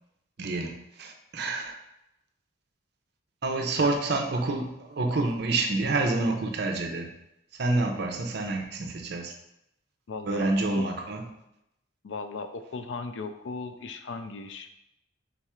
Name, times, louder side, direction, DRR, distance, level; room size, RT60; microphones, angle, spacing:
voice 1, 0.4-1.8 3.4-7.1 7.6-9.3 10.3-11.2, right 2 dB, 55° right, 3 dB, 0.5 m, -28 dB
voice 2, 10.1-10.8 12.0-14.7, left 4 dB, 70° left, 8 dB, 0.4 m, -37 dB
3.9 x 2.4 x 4.2 m, 0.83 s
head